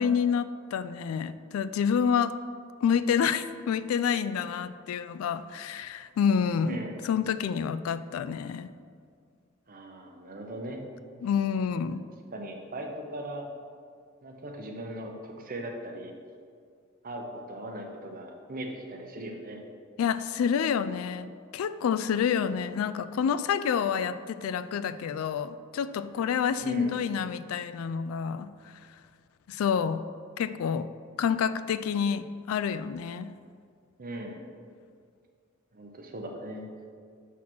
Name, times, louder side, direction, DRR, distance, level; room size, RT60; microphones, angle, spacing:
voice 1, 0.0-2.4 2.8-6.8 7.0-8.7 11.2-12.0 20.0-28.5 29.5-30.0 30.4-30.9 31.2-33.3, left 7 dB, 90° left, 15 dB, 0.3 m, -28 dB
voice 2, 6.6-7.0 9.7-10.8 12.3-13.5 14.2-16.1 17.0-19.6 26.6-27.0 34.0-34.4 35.7-36.7, right 1 dB, 45° right, 2 dB, 0.8 m, -39 dB
6.0 x 4.1 x 6.0 m, 2.2 s
head